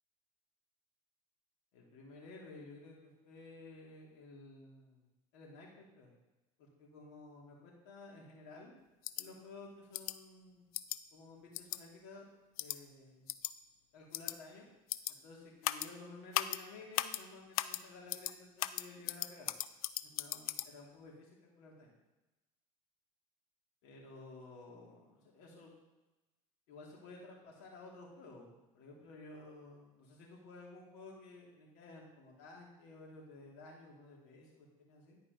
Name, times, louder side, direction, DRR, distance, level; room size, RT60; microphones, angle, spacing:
voice 1, 1.7-6.1 6.6-8.7 9.2-10.6 11.1-12.2 12.6-13.3 13.9-14.7 15.2-19.5 20.0-21.9 23.8-25.7 26.7-35.2, left 3 dB, 65° left, -2 dB, 2.9 m, -54 dB
sound 1, 9.0-9.2 9.9-10.1 10.7-11.0 11.5-11.8 12.6-12.8 13.3-13.5 14.1-14.3 14.9-15.1 15.6-15.9 16.3-16.6 16.9-17.2 17.5-17.8 18.1-18.3 18.6-20.7, left 15 dB, 80° left, 0.4 m, -36 dB
10.5 x 4.8 x 5.3 m, 1.1 s
hypercardioid pair, 90°, 18 cm